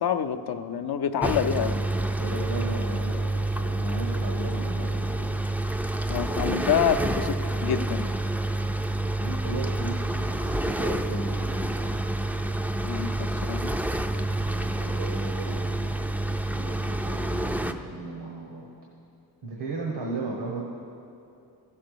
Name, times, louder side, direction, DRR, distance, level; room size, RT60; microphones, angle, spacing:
voice 1, 0.0-1.8 6.1-8.1 12.8-13.7, left 8 dB, 65° left, 7 dB, 0.6 m, -27 dB
sound 1, 1.2-17.7, right 1 dB, 5° right, 0.4 m, -28 dB
voice 2, 2.2-5.2 9.0-11.9 14.4-18.7 19.4-20.6, right 2 dB, 80° right, -2 dB, 1.4 m, -36 dB
14.5 x 5.7 x 6.8 m, 2.7 s
cardioid pair, 75°, 41 cm